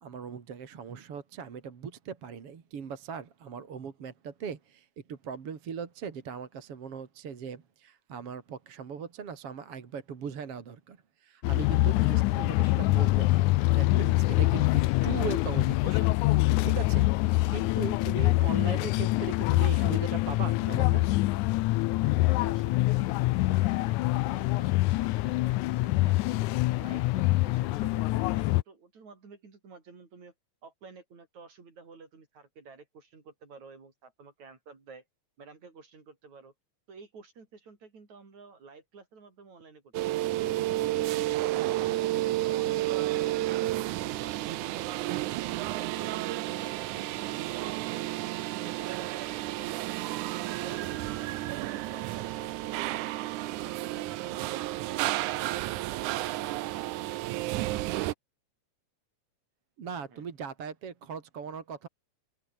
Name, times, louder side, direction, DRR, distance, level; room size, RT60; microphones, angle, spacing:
voice 1, 0.0-16.1 16.6-21.0 59.8-61.9, right 6 dB, 50° right, 3.1 m, -39 dB
sound 1, 11.4-28.6, left 19 dB, 85° left, 2.1 m, -25 dB
voice 2, 22.0-26.5 26.8-30.3 30.6-35.0 35.4-36.5 36.9-41.8 42.1-45.2 45.8-50.1 50.4-55.8 60.1-60.3, right 4 dB, 70° right, 6.3 m, -51 dB
sound 2, 39.9-58.1, right 16 dB, 90° right, 2.3 m, -31 dB
omnidirectional pair, 3.4 m